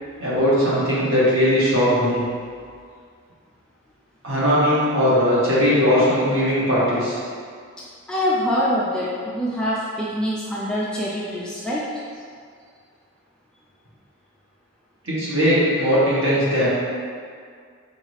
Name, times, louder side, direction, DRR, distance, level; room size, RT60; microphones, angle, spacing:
voice 1, 0.2-2.2 4.2-7.2 15.0-16.7, equal, 60° right, -9 dB, 1.3 m, -19 dB
voice 2, 8.1-11.9, equal, 5° left, -7 dB, 0.3 m, -24 dB
4.7 x 2.6 x 3.2 m, 2.1 s
head